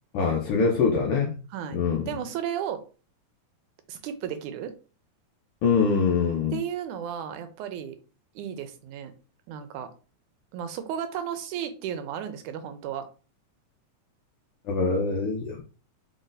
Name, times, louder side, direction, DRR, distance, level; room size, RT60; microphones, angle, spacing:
voice 1, 0.1-1.3 1.7-2.1 5.6-6.6 14.7-15.6, left 5 dB, 85° left, -1 dB, 1.2 m, -24 dB
voice 2, 1.5-2.8 3.9-4.7 6.5-8.0 8.4-9.1 9.5-9.9 10.5-13.1, right 9 dB, 85° right, 9 dB, 2.0 m, -34 dB
4.8 x 3.9 x 2.5 m, 0.35 s
omnidirectional pair, 3.5 m